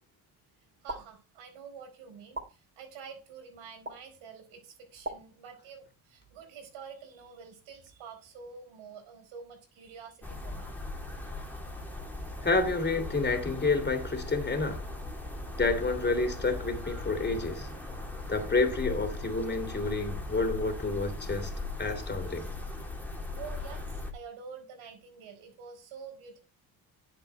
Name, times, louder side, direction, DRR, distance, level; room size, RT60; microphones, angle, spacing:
voice 1, 0.8-10.7 23.3-26.4, right 6 dB, 80° right, 4.4 m, -48 dB
sound 1, 0.9-1.0 2.3-2.5 3.8-4.0 5.0-5.2, right 2 dB, 25° right, 3.7 m, -36 dB
sound 2, 10.2-24.1, left 2 dB, 5° left, 2.9 m, -39 dB
voice 2, 12.4-14.9 15.5-17.7 18.3-21.5 21.8-22.5, left 3 dB, 20° left, 3.1 m, -29 dB
9.8 x 7.5 x 4.5 m
supercardioid pair, 80°, 48 cm